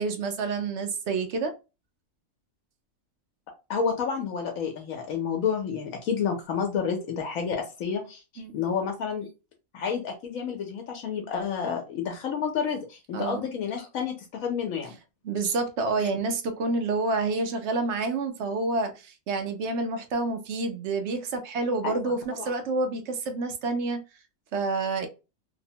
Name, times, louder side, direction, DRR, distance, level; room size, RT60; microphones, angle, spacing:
voice 1, 0.0-1.5 8.4-8.6 13.1-13.5 15.2-24.0 24.5-25.1, right 3 dB, 65° right, 0.8 m, -28 dB
voice 2, 3.7-9.3 9.7-14.9 15.4-15.5 21.8-22.1, left 6 dB, 85° left, 1.1 m, -30 dB
2.9 x 2.1 x 2.7 m
omnidirectional pair, 1.4 m